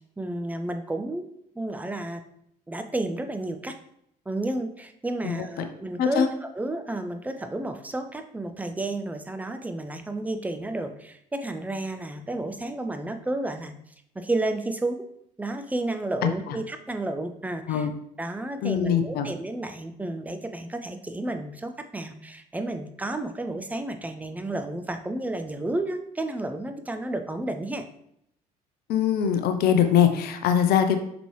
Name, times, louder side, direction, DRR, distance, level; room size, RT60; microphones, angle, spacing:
voice 1, 0.2-1.3 1.6-2.2 2.7-3.7 4.3-13.7 14.1-15.0 15.4-17.9 18.2-27.8, right 2 dB, 5° right, 7 dB, 0.6 m, -31 dB
voice 2, 5.3-5.7 6.0-6.3 16.2-16.3 17.7-17.9 18.6-19.3 28.9-31.0, left 8 dB, 50° left, 7 dB, 0.7 m, -22 dB
5.9 x 5.2 x 3.0 m, 0.74 s
figure-of-eight pair, 55°, 21 cm